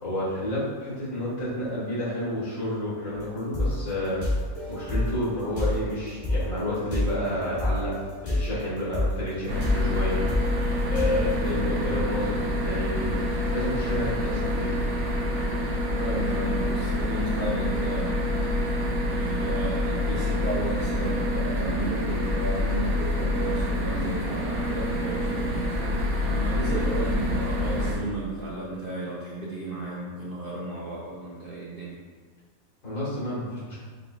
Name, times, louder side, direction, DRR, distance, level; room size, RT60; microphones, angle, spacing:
voice 1, 0.0-4.2 4.7-7.9 8.2-10.2 10.9-13.2 13.5-14.7 32.8-33.8, left 1 dB, 65° left, -9 dB, 2.0 m, -30 dB
sound 1, 3.1-8.6 8.9-11.3, left 1 dB, 40° left, 1.4 m, -29 dB
sound 2, 9.5-27.9, left 1 dB, 85° right, 1.3 m, -27 dB
voice 2, 16.0-18.2 19.1-32.0, right 2 dB, 55° right, -6 dB, 0.6 m, -34 dB
5.2 x 3.8 x 2.3 m, 1.5 s
omnidirectional pair, 1.5 m